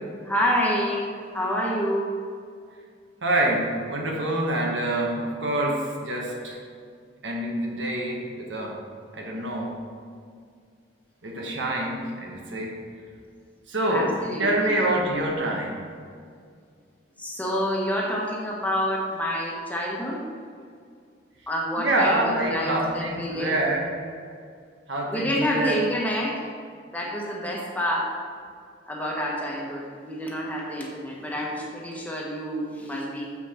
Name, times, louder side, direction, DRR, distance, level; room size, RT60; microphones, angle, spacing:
voice 1, 0.2-1.1 1.3-2.1 13.9-14.8 17.2-20.3 21.5-23.6 25.1-26.4 26.9-28.2 28.9-33.3, equal, 10° left, -2 dB, 1.2 m, -28 dB
voice 2, 3.2-6.6 7.2-8.8 9.1-9.8 11.2-12.8 13.7-15.8 21.8-23.9 24.9-25.8, right 1 dB, 75° right, -1 dB, 1.4 m, -26 dB
7.2 x 5.8 x 4.4 m, 2.2 s
head